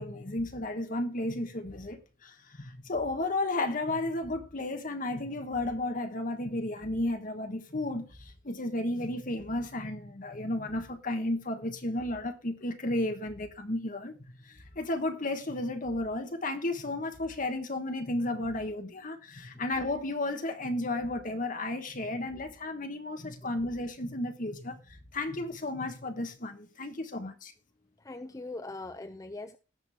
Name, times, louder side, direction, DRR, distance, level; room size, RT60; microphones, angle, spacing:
voice 1, 0.0-27.5, left 2 dB, 45° left, 1.3 m, -33 dB
voice 2, 28.0-29.6, left 2 dB, 15° left, 0.4 m, -41 dB
17.5 x 6.1 x 3.6 m
head